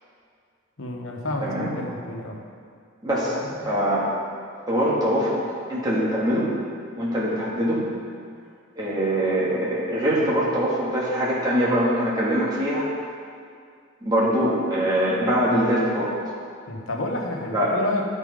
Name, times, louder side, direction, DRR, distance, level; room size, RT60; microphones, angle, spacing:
voice 1, 0.8-2.4 3.3-3.7 16.7-18.1, left 2 dB, 85° left, 0 dB, 1.1 m, -30 dB
voice 2, 1.4-1.7 3.0-3.4 3.6-4.1 4.7-6.5 7.0-7.8 8.8-12.9 14.0-16.1 17.5-17.7, equal, 20° right, -7 dB, 1.6 m, -23 dB
11.5 x 4.5 x 5.1 m, 2.2 s
head